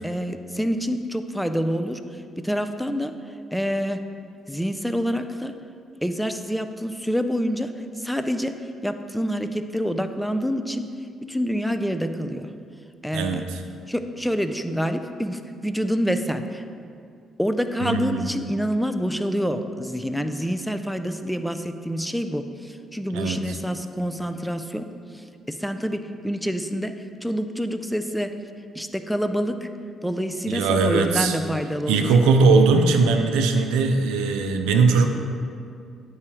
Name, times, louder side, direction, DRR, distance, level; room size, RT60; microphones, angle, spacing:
voice 1, 0.0-3.1 3.5-4.0 4.5-5.5 6.0-7.7 8.0-8.5 8.8-10.9 11.3-12.5 13.0-13.5 13.9-16.7 17.4-24.9 25.1-28.3 28.7-29.7 30.0-32.2, equal, ahead, 8 dB, 0.4 m, -27 dB
voice 2, 13.1-13.6 17.8-18.3 23.1-23.4 30.5-31.4 31.9-35.1, right 4 dB, 75° right, 5 dB, 0.5 m, -20 dB
9.5 x 4.7 x 2.9 m, 2.3 s
hypercardioid pair, 45°, 0 cm